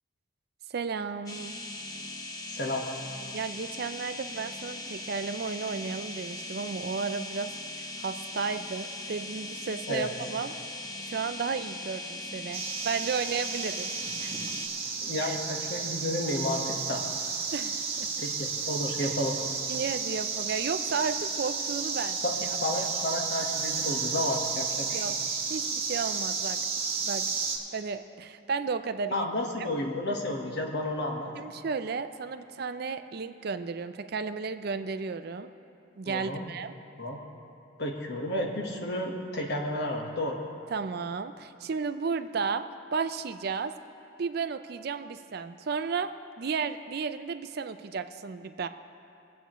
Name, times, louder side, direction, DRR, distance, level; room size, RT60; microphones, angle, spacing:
voice 1, 0.7-1.6 3.3-7.5 7.8-10.5 11.0-13.9 14.2-14.5 15.2-15.4 17.5-18.1 19.0-19.1 19.7-22.2 22.8-22.9 24.9-25.1 25.5-26.6 27.0-27.3 27.7-29.3 29.6-29.7 31.4-35.5 36.0-36.7 40.7-42.7 42.9-43.7 44.2-46.1 46.4-48.7, right 5 dB, 50° right, 10 dB, 0.4 m, -33 dB
sound 1, 1.3-14.7, left 2 dB, 20° left, 0.8 m, -39 dB
voice 2, 2.5-2.8 9.9-10.1 15.0-17.0 18.2-19.4 22.1-25.0 29.1-31.3 36.0-36.4 37.0-37.2 37.8-40.4, left 1 dB, 60° left, 1 dB, 1.3 m, -31 dB
sound 2, 12.5-27.6, right 5 dB, 30° right, 1.4 m, -32 dB
23.0 x 8.1 x 3.1 m, 2.6 s
head